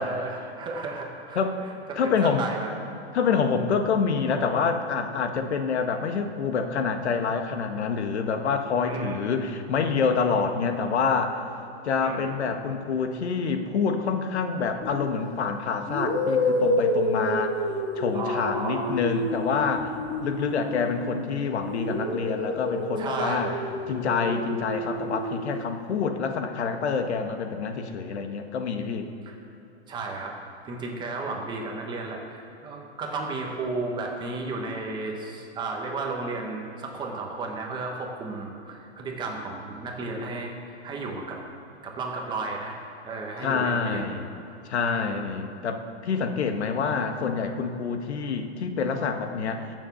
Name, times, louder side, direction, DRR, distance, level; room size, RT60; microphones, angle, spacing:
voice 1, 0.0-2.9 8.8-9.3 12.0-12.4 18.1-19.0 23.0-23.6 29.2-29.3 29.9-30.4 30.6-41.4 41.8-42.8 43.0-44.0 44.8-45.2, right 3 dB, 15° right, 1 dB, 1.2 m, -33 dB
voice 2, 2.0-2.5 3.1-11.4 11.8-17.6 18.0-19.9 20.2-23.5 23.9-29.1 43.4-44.3 44.7-49.7, left 5 dB, 75° left, 6 dB, 1.5 m, -27 dB
sound 1, 14.8-15.1 15.9-21.2 21.6-25.6, left 1 dB, 20° left, 2.3 m, -29 dB
15.0 x 7.2 x 7.1 m, 2.9 s
hypercardioid pair, 160°, 33 cm